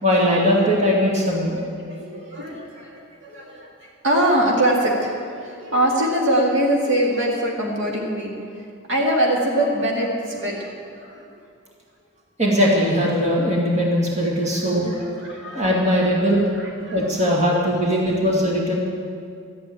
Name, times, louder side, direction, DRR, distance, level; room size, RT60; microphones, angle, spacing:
voice 1, 0.0-1.6 12.4-15.1 15.5-16.5 16.9-18.8, equal, 35° right, -3 dB, 2.2 m, -20 dB
voice 2, 1.6-3.7 4.0-8.3 8.9-11.2 14.5-15.7 16.5-17.0, right 1 dB, 60° right, -2 dB, 2.2 m, -23 dB
13.0 x 8.7 x 8.9 m, 2.3 s
head